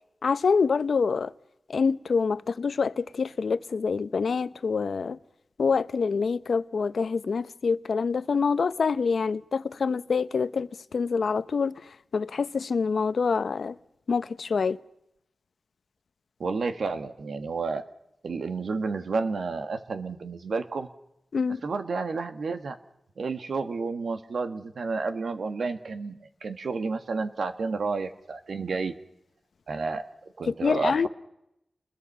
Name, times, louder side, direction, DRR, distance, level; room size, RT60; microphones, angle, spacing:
voice 1, 0.2-1.3 1.7-5.2 5.6-11.7 12.1-13.7 14.1-14.8 21.3-21.6 30.5-31.1, left 5 dB, 80° left, 0.8 m, -26 dB
voice 2, 16.4-17.8 18.2-20.9 21.6-22.8 23.2-29.0 29.7-30.0 30.4-31.1, right 4 dB, 80° right, 1.7 m, -31 dB
29.0 x 21.5 x 5.6 m
wide cardioid pair, 75°, 0 cm